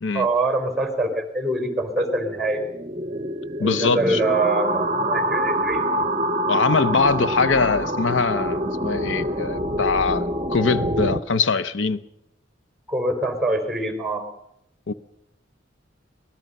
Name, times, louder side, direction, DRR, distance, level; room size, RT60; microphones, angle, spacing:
voice 1, 0.1-2.6 3.6-5.9 12.9-14.2, right 2 dB, ahead, 7 dB, 4.1 m, -24 dB
sound 1, 1.6-11.2, right 1 dB, 35° right, 0.9 m, -26 dB
voice 2, 3.6-4.3 6.5-12.0 14.9-15.0, left 4 dB, 90° left, 11 dB, 0.8 m, -22 dB
24.5 x 20.0 x 5.4 m, 0.83 s
head